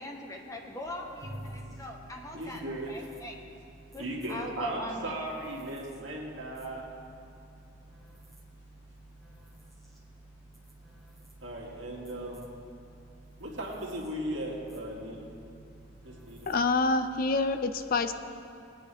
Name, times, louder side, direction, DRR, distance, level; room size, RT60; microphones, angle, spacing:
voice 1, 0.0-2.6 2.9-3.3 3.9-5.1, equal, 15° left, 1 dB, 1.0 m, -40 dB
sound 1, 0.8-17.4, right 1 dB, ahead, 1.4 m, -54 dB
sound 2, 1.2-6.3, equal, 55° right, 1.3 m, -49 dB
voice 2, 2.3-3.1 4.0-6.9 11.4-12.5 13.4-15.3 16.0-16.5, right 1 dB, 70° right, -3 dB, 2.2 m, -37 dB
voice 3, 16.5-18.1, left 3 dB, 50° left, 10 dB, 0.5 m, -27 dB
20.5 x 9.1 x 3.4 m, 2.5 s
head